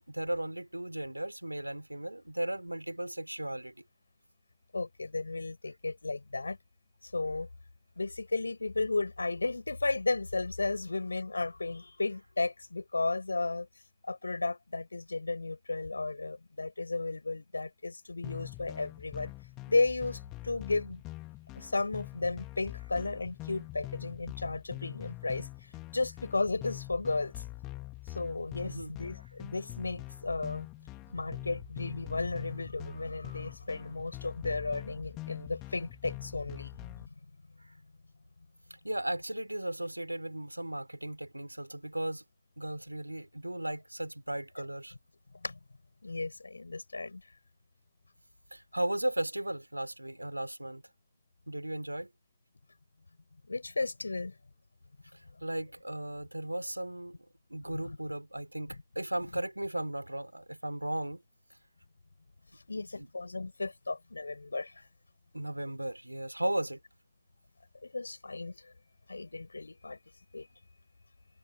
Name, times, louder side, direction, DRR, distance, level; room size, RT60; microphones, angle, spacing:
voice 1, 0.0-3.7 28.6-28.9 38.8-42.2 42.6-44.9 48.5-50.8 51.5-52.1 55.1-57.1 57.5-61.2 63.0-63.1 65.3-66.8, right 1 dB, 85° right, 4.2 m, -36 dB
voice 2, 4.7-6.6 7.0-7.5 8.0-13.7 14.0-19.3 19.7-21.0 21.6-25.5 25.9-27.4 28.1-30.7 31.1-36.9 45.4-45.6 46.0-47.2 53.5-54.3 57.7-58.0 62.7-64.8 67.8-68.7 69.1-70.0 70.3-70.5, left 3 dB, 80° left, 7.2 m, -34 dB
sound 1, 18.2-37.1, left 21 dB, 40° left, 3.7 m, -44 dB
figure-of-eight pair, 90°, 0 cm